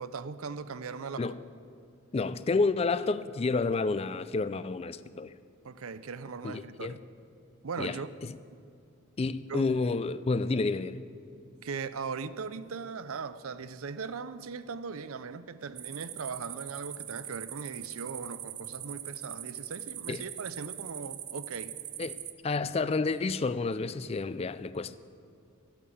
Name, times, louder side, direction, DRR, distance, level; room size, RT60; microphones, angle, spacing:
voice 1, 0.0-1.3 5.6-7.0 7.6-8.1 9.5-9.7 11.6-21.8, right 5 dB, 80° right, 0.6 m, -39 dB
voice 2, 2.1-5.3 6.4-7.0 7.8-8.0 9.2-11.0 20.1-20.2 22.0-22.2 22.4-25.0, left 3 dB, 30° left, 0.3 m, -30 dB
sound 1, 15.8-22.3, right 11 dB, 35° right, 0.5 m, -41 dB
13.0 x 8.8 x 8.4 m
head